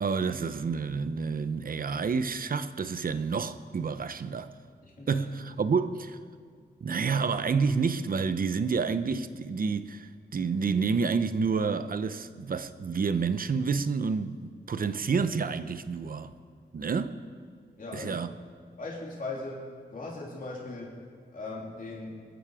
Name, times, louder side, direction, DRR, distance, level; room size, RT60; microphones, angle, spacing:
voice 1, 0.0-4.5 5.1-6.2 6.8-16.3 16.7-17.2 17.9-18.3, right 5 dB, 50° right, 0.7 m, -29 dB
voice 2, 4.8-5.2 17.8-18.2 18.8-21.0 21.3-22.2, left 2 dB, 50° left, 3.2 m, -39 dB
26.0 x 9.2 x 4.9 m
wide cardioid pair, 135°, 18 cm